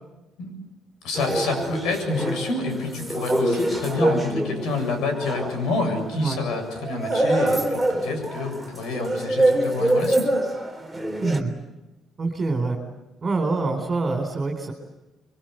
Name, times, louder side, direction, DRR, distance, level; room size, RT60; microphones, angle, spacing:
voice 1, 1.0-10.3, left 3 dB, 85° left, 6 dB, 7.4 m, -28 dB
sound 1, 1.2-11.4, right 1 dB, ahead, 3.5 m, -25 dB
voice 2, 11.2-11.5 12.2-12.8 13.2-14.7, right 3 dB, 25° right, 0 dB, 4.3 m, -25 dB
27.5 x 24.0 x 8.0 m, 1.0 s
cardioid pair, 145°, 0 cm